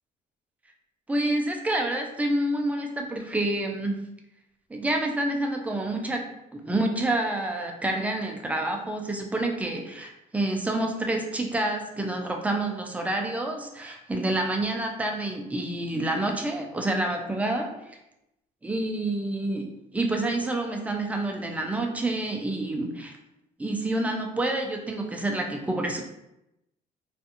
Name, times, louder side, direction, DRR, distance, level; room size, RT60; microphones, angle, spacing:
voice 1, 1.1-4.0 4.7-6.2 6.5-17.8 18.6-19.7 19.9-23.1 23.6-26.0, right 1 dB, 10° right, 2 dB, 0.4 m, -28 dB
2.5 x 2.3 x 2.7 m, 0.88 s
cardioid pair, 110°, 17 cm